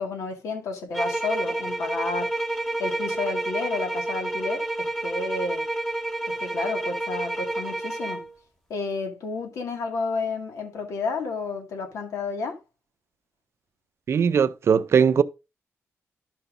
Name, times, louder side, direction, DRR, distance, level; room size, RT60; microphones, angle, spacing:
voice 1, 0.0-2.3 2.8-5.7 6.3-8.2 8.7-12.6, left 4 dB, 85° left, 2.1 m, -31 dB
sound 1, 0.9-8.3, right 2 dB, 10° left, 1.5 m, -29 dB
voice 2, 14.1-15.2, right 7 dB, 55° right, 0.5 m, -19 dB
12.5 x 5.9 x 2.6 m
cardioid pair, 100°, 5 cm